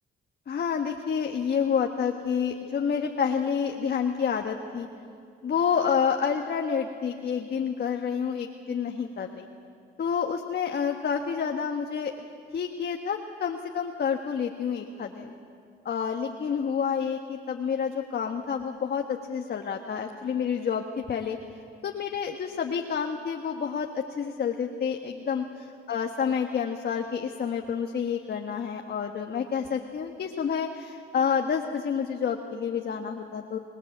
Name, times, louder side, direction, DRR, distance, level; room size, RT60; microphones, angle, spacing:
voice 1, 0.5-4.9 5.4-9.5 10.0-12.1 12.5-15.3 15.8-21.4 21.8-33.6, left 7 dB, 55° left, 3 dB, 1.4 m, -29 dB
25.5 x 19.5 x 8.0 m, 2.4 s
cardioid pair, 90°, 20 cm